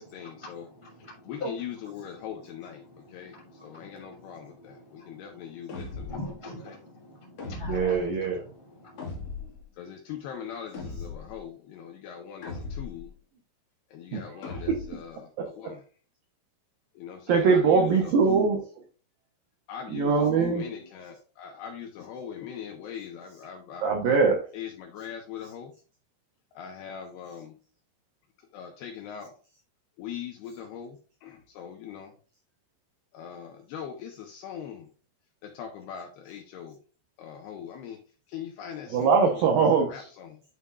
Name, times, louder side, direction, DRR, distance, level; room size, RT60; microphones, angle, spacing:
voice 1, 0.0-0.7 1.0-2.8 3.1-6.2 6.6-6.8 9.8-13.1 13.9-15.3 15.5-15.8 17.0-17.9 18.2-18.3 19.7-24.2 24.5-25.7 26.5-27.6 28.4-29.3 30.0-32.1 33.1-34.9 35.4-36.8 37.2-38.0 38.3-39.4 39.9-40.4, left 8 dB, 80° left, 3 dB, 2.4 m, -41 dB
sound 1, 5.7-6.3 7.4-8.1 9.0-9.6 10.7-11.4 12.4-13.1 14.4-15.1, left 4 dB, 50° left, 2.2 m, -38 dB
voice 2, 6.1-7.9 8.9-9.1, left 1 dB, 50° right, -5 dB, 0.3 m, -39 dB
voice 3, 7.6-8.4 14.1-14.8 15.4-15.7 17.3-18.6 19.9-20.7 23.8-24.4 38.9-40.1, right 5 dB, 85° right, 2 dB, 2.0 m, -23 dB
11.0 x 5.6 x 2.4 m, 0.39 s
omnidirectional pair, 5.6 m